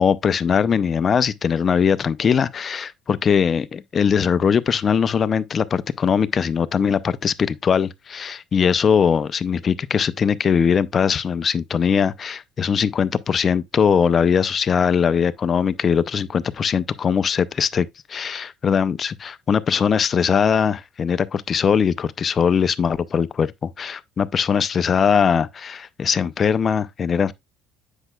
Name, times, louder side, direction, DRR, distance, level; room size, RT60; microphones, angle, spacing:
voice 1, 0.0-27.3, left 7 dB, 35° left, 0.4 m, -20 dB
8.0 x 5.4 x 2.2 m
cardioid pair, 125°, 0 cm